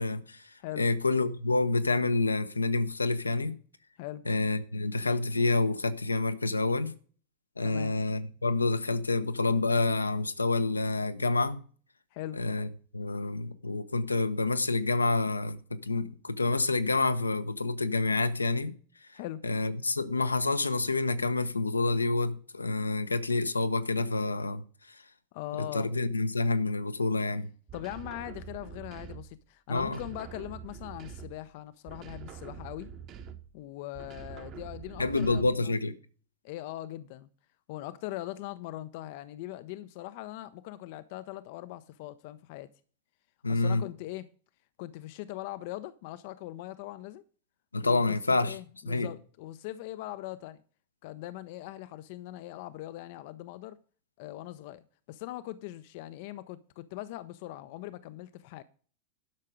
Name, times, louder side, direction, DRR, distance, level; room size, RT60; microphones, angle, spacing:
voice 1, 0.0-3.5 4.3-6.9 7.6-11.6 12.4-12.7 12.9-18.7 19.4-24.6 25.6-27.5 29.7-30.0 35.0-36.0 43.4-43.9 47.7-48.6 48.9-49.1, left 3 dB, 80° left, 0.9 m, -28 dB
voice 2, 7.6-7.9 12.1-12.4 19.1-19.4 25.3-25.9 27.7-32.9 33.5-35.8 36.4-37.3 37.7-42.7 43.5-44.3 44.8-47.2 47.8-50.6 51.0-53.8 54.2-58.6, left 15 dB, 50° left, 0.6 m, -41 dB
sound 1, 27.7-29.4 29.8-31.5 31.9-33.6 33.9-35.7, right 7 dB, 35° right, 1.2 m, -45 dB
11.5 x 6.5 x 4.9 m
figure-of-eight pair, 90°, 0 cm